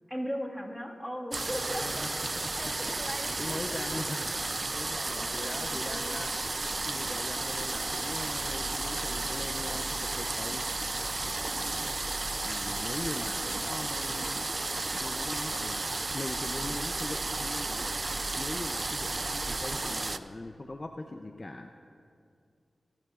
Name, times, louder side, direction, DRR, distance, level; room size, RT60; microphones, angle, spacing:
voice 1, 0.1-2.1 2.5-4.0 4.7-6.2, equal, 5° left, -1 dB, 1.8 m, -39 dB
sound 1, 1.3-20.2, right 2 dB, 45° right, 0.4 m, -33 dB
voice 2, 1.6-2.8 3.4-4.4 4.7-6.3 6.8-10.7 11.2-11.9 12.4-14.5 15.0-18.0 18.3-21.7, left 2 dB, 40° left, 5 dB, 0.5 m, -41 dB
24.5 x 10.5 x 2.5 m, 2.3 s
cardioid pair, 45°, 0 cm